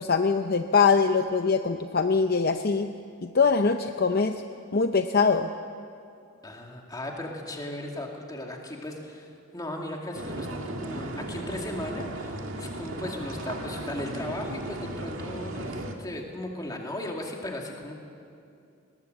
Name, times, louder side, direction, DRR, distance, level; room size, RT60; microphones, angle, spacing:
voice 1, 0.0-2.9 3.2-4.4 4.7-5.5, left 5 dB, 45° left, 7 dB, 0.6 m, -23 dB
voice 2, 6.4-17.9, left 1 dB, 15° left, 1 dB, 2.3 m, -37 dB
sound 1, 10.1-15.9, right 1 dB, 65° right, 2.0 m, -36 dB
20.5 x 19.5 x 7.9 m, 2.5 s
head